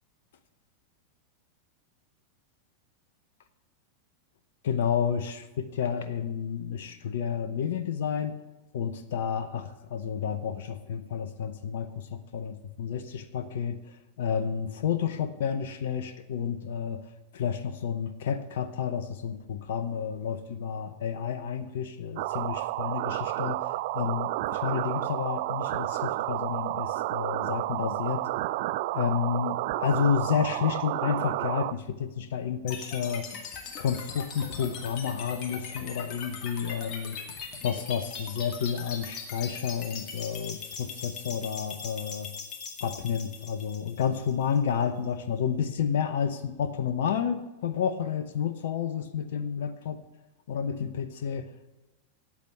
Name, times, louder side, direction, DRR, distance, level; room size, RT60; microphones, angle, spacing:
voice 1, 4.6-8.4 8.7-13.8 14.2-17.0 17.3-28.2 28.9-33.3 33.8-37.2 37.6-42.3 42.8-50.0 50.5-51.5, left 7 dB, 55° left, 10 dB, 0.8 m, -30 dB
sound 1, 22.2-31.7, right 17 dB, 50° right, 0.4 m, -31 dB
sound 2, 32.7-44.7, left 5 dB, 40° left, 2.2 m, -40 dB
8.6 x 8.4 x 9.0 m, 1.1 s
figure-of-eight pair, 90°, 0 cm